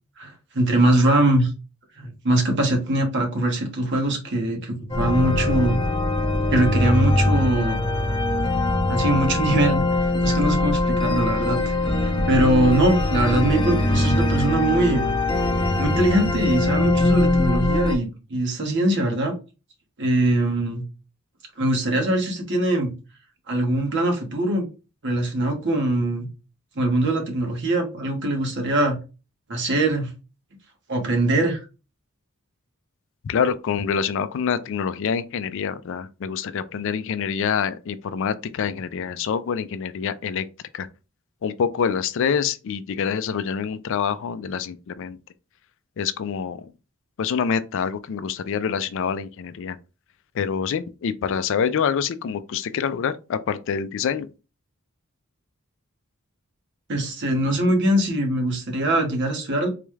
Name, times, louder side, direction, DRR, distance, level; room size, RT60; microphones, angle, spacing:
voice 1, 0.2-1.5 2.0-5.8 6.5-7.8 8.9-11.6 11.9-15.1 15.8-19.3 20.0-20.8 21.6-22.9 23.5-24.7 25.0-26.3 26.8-29.0 29.5-30.1 30.9-31.6 56.9-59.7, right 1 dB, 60° right, 1.2 m, -22 dB
sound 1, 4.9-17.9, left 2 dB, 25° left, 0.7 m, -22 dB
voice 2, 33.2-40.4 40.7-40.9 41.4-45.2 46.0-46.7 47.2-49.8 50.3-54.3, left 7 dB, 65° left, 0.4 m, -26 dB
4.0 x 2.3 x 3.1 m
head